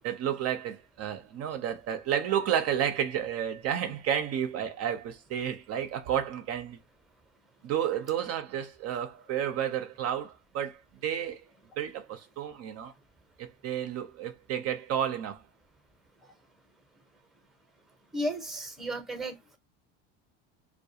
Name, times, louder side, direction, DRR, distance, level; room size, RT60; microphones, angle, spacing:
voice 1, 0.0-6.8 7.6-11.4 11.8-12.9 13.4-15.4, right 9 dB, 45° right, 0.5 m, -31 dB
voice 2, 18.1-19.6, equal, ahead, 0.7 m, -34 dB
2.3 x 2.2 x 2.7 m
supercardioid pair, 105°, 34 cm